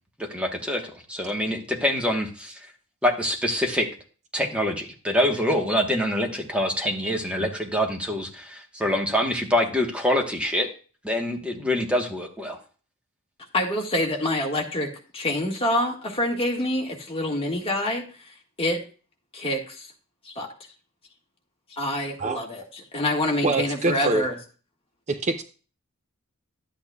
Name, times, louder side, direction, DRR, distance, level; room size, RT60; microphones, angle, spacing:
voice 1, 0.2-2.6 3.0-3.9 4.3-10.7 11.0-12.6, left 1 dB, 5° right, 1.2 m, -25 dB
voice 2, 13.5-18.8 19.3-19.9 20.2-20.5 21.7-22.6 22.9-24.3, left 1 dB, 25° left, 1.7 m, -26 dB
voice 3, 23.4-24.3 25.1-25.4, right 2 dB, 30° right, 0.6 m, -25 dB
12.0 x 8.8 x 2.3 m
head